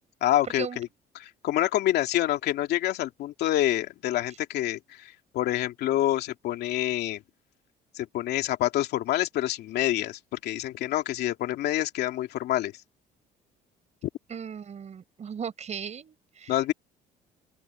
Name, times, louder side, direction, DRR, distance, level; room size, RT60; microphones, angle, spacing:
voice 1, 0.2-0.9 1.1-7.2 7.9-12.7 16.5-16.7, left 14 dB, 75° left, 2.8 m, -27 dB
voice 2, 14.3-16.5, right 7 dB, 40° right, 6.6 m, -37 dB
open air
cardioid pair, 110°, 17 cm